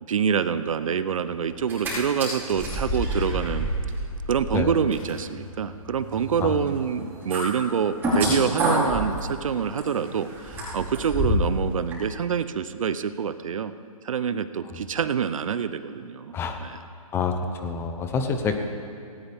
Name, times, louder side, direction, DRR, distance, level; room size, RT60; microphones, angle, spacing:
voice 1, 0.1-3.7 4.3-13.7 14.0-16.3 16.6-16.8, right 7 dB, 60° right, 13 dB, 0.7 m, -26 dB
sound 1, 1.5-1.9 2.2-11.6 11.9-12.0, equal, 10° right, 4.6 m, -29 dB
voice 2, 17.1-18.6, left 5 dB, 15° left, 6 dB, 0.9 m, -27 dB
18.0 x 17.5 x 3.6 m, 2.3 s
hypercardioid pair, 145°, 19 cm